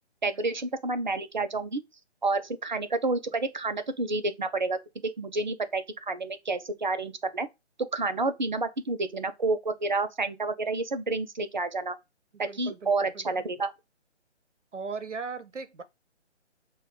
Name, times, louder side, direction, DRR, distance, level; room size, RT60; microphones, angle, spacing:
voice 1, 0.2-1.8 2.2-4.8 5.0-7.5 7.9-12.0 12.4-13.7, right 3 dB, 40° right, 0.4 m, -29 dB
voice 2, 12.3-13.5 14.7-15.8, right 5 dB, 85° right, 0.7 m, -38 dB
5.1 x 2.2 x 3.7 m
figure-of-eight pair, 145°, 35 cm